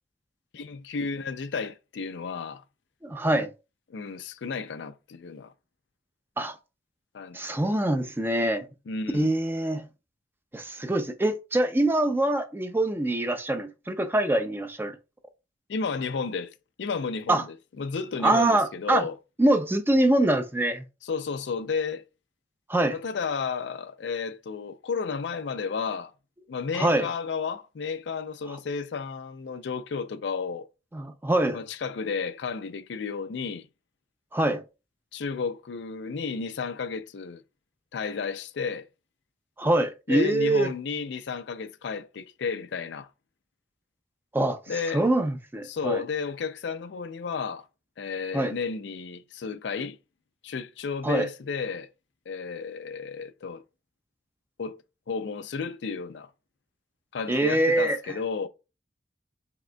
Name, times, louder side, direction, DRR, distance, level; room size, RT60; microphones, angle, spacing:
voice 1, 0.5-2.6 3.9-5.5 7.1-7.4 8.9-9.3 15.7-19.1 21.0-22.1 22.9-26.1 26.5-30.7 31.5-33.7 35.1-37.4 37.9-38.9 40.1-43.1 44.7-45.0 45.7-47.7 48.0-50.0 50.4-51.9 52.3-53.6 54.6-54.8 55.1-56.3 57.1-58.5, left 5 dB, 80° left, 0.4 m, -32 dB
voice 2, 3.0-3.5 6.4-6.6 7.3-8.7 9.1-9.9 10.5-15.0 17.3-17.4 18.2-19.1 19.4-20.8 22.7-23.0 26.8-27.1 30.9-31.6 34.3-34.6 39.6-40.7 44.3-44.6 44.9-46.0 48.3-48.5 51.0-51.3 57.3-58.0, right 1 dB, 10° right, 0.4 m, -24 dB
5.0 x 3.5 x 2.2 m
head